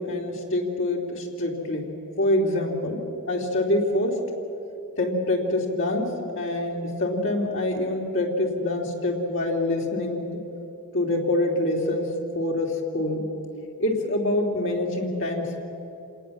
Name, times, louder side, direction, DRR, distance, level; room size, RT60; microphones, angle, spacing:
voice 1, 0.0-4.2 5.0-10.3 10.9-13.3 13.8-15.6, left 1 dB, 60° left, 0 dB, 3.2 m, -26 dB
27.5 x 18.5 x 7.3 m, 2.9 s
head